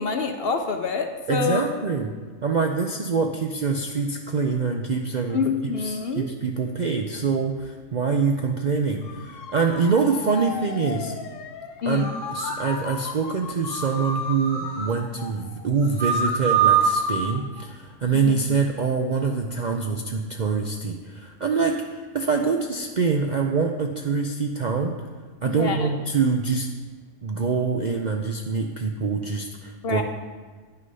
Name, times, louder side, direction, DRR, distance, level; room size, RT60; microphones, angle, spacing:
voice 1, 0.0-1.6 5.3-6.3 11.8-12.1 18.1-18.3 25.5-25.9 29.8-30.0, left 5 dB, 55° left, 6 dB, 0.8 m, -26 dB
voice 2, 1.3-2.1 2.4-5.4 5.8-11.1 11.9-12.1 12.3-24.9 25.4-26.7 27.2-30.0, right 5 dB, 55° right, 3 dB, 0.5 m, -25 dB
Motor vehicle (road) / Siren, 9.0-17.9 18.3-18.8, left 5 dB, 75° left, 1.1 m, -38 dB
sound 1, 12.0-12.7 13.7-14.9 15.8-17.3, right 6 dB, 70° right, 2.9 m, -24 dB
9.9 x 6.4 x 5.4 m, 1.4 s
omnidirectional pair, 1.4 m